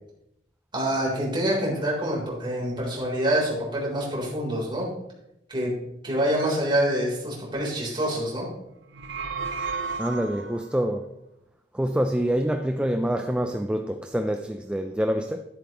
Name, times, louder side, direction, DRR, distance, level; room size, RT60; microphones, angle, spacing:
voice 1, 0.7-4.9 5.5-5.8 6.0-8.5, right 1 dB, 25° right, 3.6 m, -26 dB
sound 1, 8.8-10.7, right 5 dB, 80° right, 0.8 m, -33 dB
voice 2, 10.0-11.1 11.7-15.4, equal, 5° right, 0.4 m, -26 dB
11.5 x 10.5 x 3.0 m
head